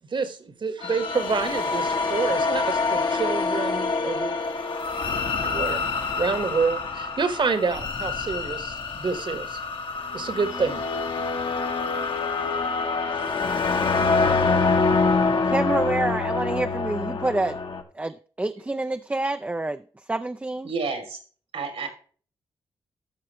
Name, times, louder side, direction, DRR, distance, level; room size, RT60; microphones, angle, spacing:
voice 1, 0.1-4.3 5.4-5.8 6.2-9.6 10.1-10.8, right 4 dB, 50° right, 1.4 m, -27 dB
sound 1, 0.8-17.8, left 4 dB, 55° left, 1.2 m, -26 dB
voice 2, 15.4-17.6 18.0-19.8 20.1-20.7, right 2 dB, 15° right, 0.5 m, -27 dB
voice 3, 20.6-21.2 21.5-21.9, right 4 dB, 80° right, 2.8 m, -30 dB
13.5 x 5.8 x 3.1 m
cardioid pair, 65°, 10 cm